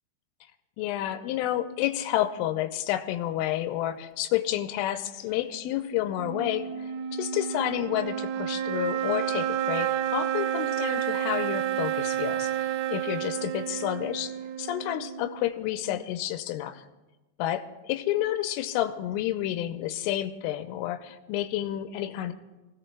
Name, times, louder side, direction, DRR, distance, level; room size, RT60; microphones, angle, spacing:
voice 1, 0.8-14.3 14.6-16.8 17.4-22.3, left 13 dB, 85° left, 8 dB, 3.2 m, -30 dB
sound 1, 6.2-15.6, right 10 dB, 85° right, 3.2 m, -30 dB
26.5 x 17.0 x 2.3 m, 1.1 s
omnidirectional pair, 5.7 m